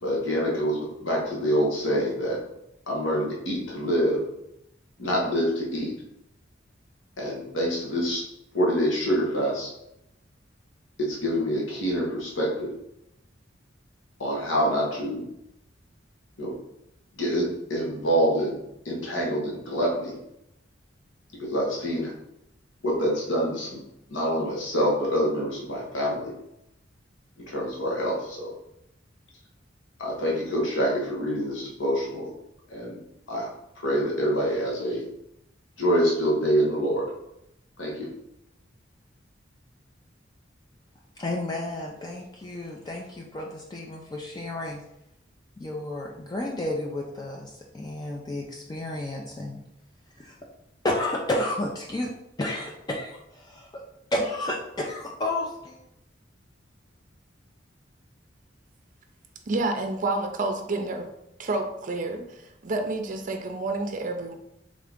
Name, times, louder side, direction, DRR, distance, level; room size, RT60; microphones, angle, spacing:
voice 1, 0.0-2.4 2.9-4.2 5.0-5.9 7.2-8.2 8.5-9.7 11.0-12.7 14.2-15.3 16.4-16.5 17.2-18.6 18.8-20.2 21.4-22.1 22.8-23.8 24.1-26.3 27.5-28.5 30.0-32.3 32.7-33.0 33.3-33.5 33.8-35.0 35.8-37.1 37.8-38.1, equal, 90° left, -3 dB, 1.2 m, -26 dB
voice 2, 41.2-44.8 45.6-49.6 50.2-50.4 50.8-52.1 52.4-53.8 54.1-55.8, left 1 dB, 20° left, -1 dB, 0.4 m, -31 dB
voice 3, 59.5-61.1 61.4-64.4, right 2 dB, 45° right, 6 dB, 0.5 m, -29 dB
3.7 x 3.7 x 3.5 m, 0.82 s
head